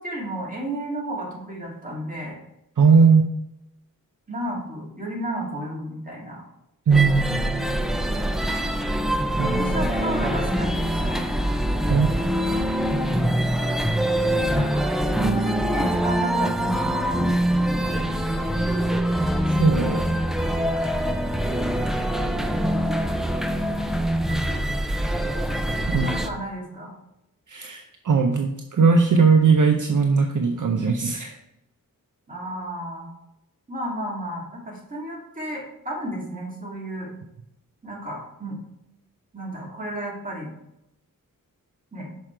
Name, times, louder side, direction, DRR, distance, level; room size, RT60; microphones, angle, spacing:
voice 1, 0.0-2.4 4.3-6.4 9.4-11.2 14.5-14.9 15.2-17.4 24.5-24.6 25.9-26.9 32.3-33.1 33.7-37.1 37.8-38.6 39.3-40.5 41.9-42.1, right 1 dB, 20° right, -4 dB, 2.3 m, -32 dB
voice 2, 2.8-3.2 6.9-7.7 9.4-9.8 11.9-12.1 19.6-20.0 25.8-26.1 27.5-31.3, right 5 dB, 60° right, 4 dB, 0.6 m, -19 dB
sound 1, 6.9-26.3, right 1 dB, ahead, 0.5 m, -24 dB
6.2 x 4.9 x 4.4 m, 0.85 s
wide cardioid pair, 95°, 36 cm